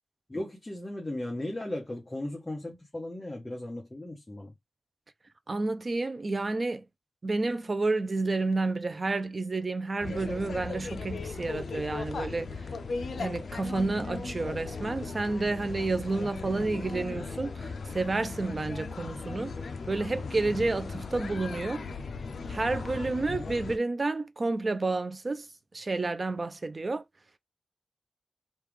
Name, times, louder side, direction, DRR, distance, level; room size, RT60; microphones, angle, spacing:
voice 1, 0.3-4.5, left 1 dB, 15° left, 0.8 m, -36 dB
voice 2, 5.5-6.9 7.2-12.6 13.2-19.5 19.9-21.8 22.5-25.5 25.7-27.0, right 3 dB, 30° right, 0.4 m, -30 dB
sound 1, 10.0-23.8, left 4 dB, 70° left, 0.4 m, -37 dB
3.2 x 2.4 x 3.3 m
wide cardioid pair, 155°, 0 cm